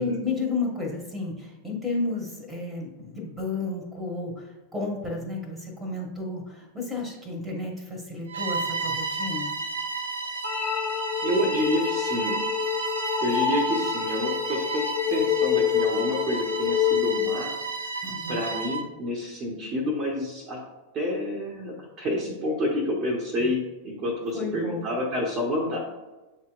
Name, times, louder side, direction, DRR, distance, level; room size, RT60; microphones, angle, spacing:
voice 1, 0.0-9.6 18.0-18.4 24.3-24.9, left 3 dB, 5° right, 0 dB, 1.1 m, -32 dB
Bowed string instrument, 8.3-18.9, right 4 dB, 70° right, 0.4 m, -32 dB
sound 1, 10.4-17.4, left 10 dB, 25° left, 0.3 m, -27 dB
voice 2, 11.2-12.4 13.2-17.5 18.3-20.6 20.9-25.8, left 1 dB, 30° right, -1 dB, 0.8 m, -28 dB
7.8 x 2.9 x 2.4 m, 1.1 s
figure-of-eight pair, 90°, 0 cm